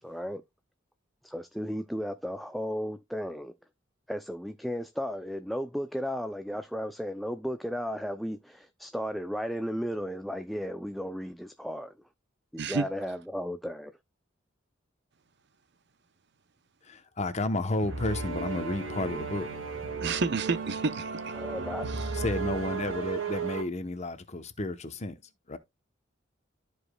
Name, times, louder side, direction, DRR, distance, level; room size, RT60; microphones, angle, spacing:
voice 1, 0.0-0.4 1.2-3.5 4.1-11.9 12.5-13.9 21.3-21.9, equal, ahead, 0.3 m, -34 dB
voice 2, 16.8-19.5 22.1-25.2 25.5-25.6, left 2 dB, 35° left, 0.8 m, -32 dB
sound 1, 17.8-23.6, right 5 dB, 85° right, 1.8 m, -34 dB
voice 3, 20.0-21.3 21.9-22.0, right 4 dB, 60° right, 0.6 m, -30 dB
13.0 x 4.9 x 2.2 m
head